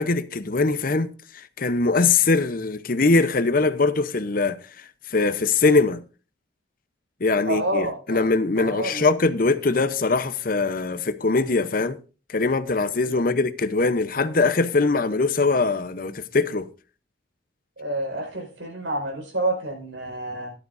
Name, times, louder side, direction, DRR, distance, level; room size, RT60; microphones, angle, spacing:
voice 1, 0.0-6.0 7.2-12.0 12.3-16.7, left 3 dB, 45° left, 0.7 m, -22 dB
voice 2, 7.4-8.2 8.6-9.1 13.0-13.2 17.8-20.5, right 1 dB, 80° right, 4.7 m, -28 dB
14.0 x 12.0 x 2.6 m
head